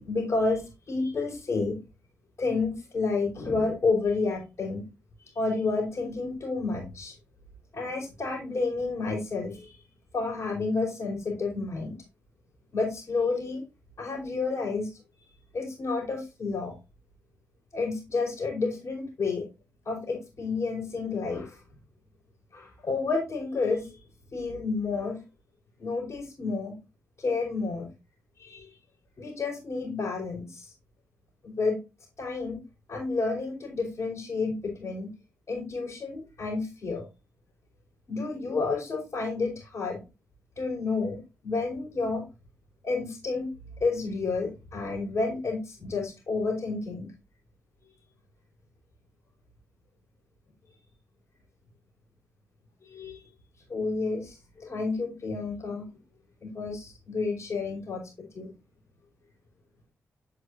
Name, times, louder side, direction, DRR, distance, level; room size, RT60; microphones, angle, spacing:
voice 1, 0.0-1.8 2.4-4.9 5.2-7.1 7.7-9.8 10.1-12.0 12.7-13.6 14.0-14.9 15.5-16.7 17.7-19.4 19.8-21.6 22.5-24.0 24.3-25.2 25.8-26.8 27.2-27.9 28.4-28.7 29.2-30.7 31.4-31.8 32.2-32.6 32.9-35.1 35.5-37.0 38.1-40.0 40.6-42.2 42.8-43.5 43.8-47.1 52.8-53.2 53.7-55.9 56.4-58.5, left 3 dB, 55° left, -6 dB, 4.3 m, -30 dB
9.1 x 5.8 x 2.5 m, 0.25 s
supercardioid pair, 45°, 6 cm